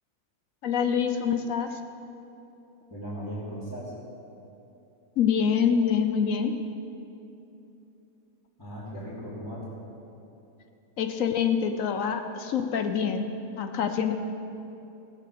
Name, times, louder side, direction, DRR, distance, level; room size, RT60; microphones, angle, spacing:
voice 1, 0.6-1.8 5.2-6.6 11.0-13.3 13.6-14.1, left 7 dB, 65° left, 7 dB, 1.1 m, -25 dB
voice 2, 2.9-3.9 8.6-9.8, equal, 10° left, -13 dB, 3.3 m, -37 dB
18.0 x 7.7 x 6.6 m, 2.9 s
omnidirectional pair, 1.7 m